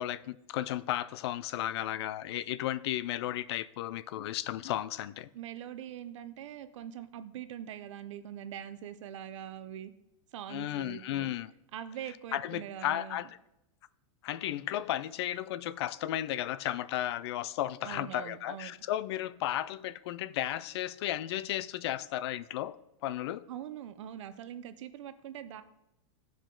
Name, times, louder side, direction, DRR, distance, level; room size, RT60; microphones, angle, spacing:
voice 1, 0.0-5.3 10.5-11.5 12.3-13.3 14.2-23.4, left 13 dB, 55° left, 0.4 m, -34 dB
voice 2, 5.3-9.9 10.3-11.3 11.7-13.2 17.8-18.8 23.5-25.6, right 10 dB, 70° right, 0.7 m, -43 dB
15.0 x 5.1 x 3.8 m
supercardioid pair, 165°, 16 cm